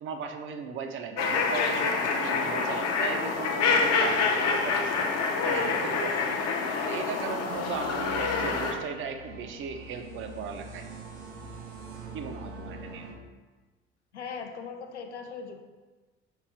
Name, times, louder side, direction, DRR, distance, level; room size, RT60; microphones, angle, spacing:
voice 1, 0.0-5.0 5.4-6.5 6.8-10.8 12.1-13.1, right 6 dB, 35° right, 5 dB, 0.5 m, -37 dB
sound 1, 1.2-8.7, left 4 dB, 50° left, 0.7 m, -27 dB
sound 2, 7.5-13.1, right 2 dB, 75° right, 0.8 m, -44 dB
voice 2, 12.8-13.2 14.1-15.6, left 5 dB, 85° left, 5 dB, 0.5 m, -40 dB
5.0 x 3.3 x 3.2 m, 1.3 s
figure-of-eight pair, 60°, 33 cm